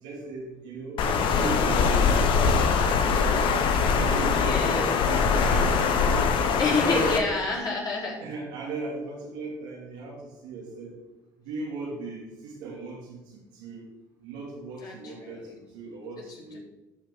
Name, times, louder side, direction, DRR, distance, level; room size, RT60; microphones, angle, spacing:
voice 1, 0.0-3.5 3.9-6.2 6.5-7.5 8.2-10.9 11.4-13.9 14.2-16.6, right 3 dB, 80° right, -5 dB, 2.6 m, -37 dB
Water, 1.0-7.2, left 5 dB, 60° left, 1.1 m, -22 dB
voice 2, 4.3-4.9 6.6-8.2 14.8-15.4 16.5-16.6, left 3 dB, 45° left, -3 dB, 3.6 m, -29 dB
13.5 x 5.9 x 3.7 m, 1.0 s
supercardioid pair, 75°, 10 cm